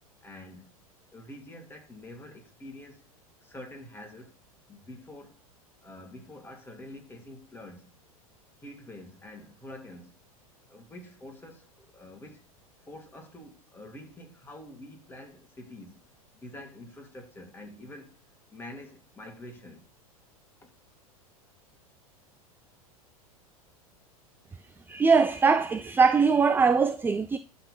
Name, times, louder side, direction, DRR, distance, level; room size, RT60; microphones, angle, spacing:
voice 1, 0.2-0.8 1.1-3.0 3.4-4.4 4.7-5.4 5.8-7.9 8.6-10.1 10.7-12.4 12.9-16.0 16.3-18.2 18.5-19.8 20.6-20.7, left 1 dB, 10° left, 3.1 m, -46 dB
voice 2, 24.9-27.4, right 5 dB, 10° right, 0.5 m, -22 dB
11.5 x 4.4 x 7.3 m
figure-of-eight pair, 90°, 19 cm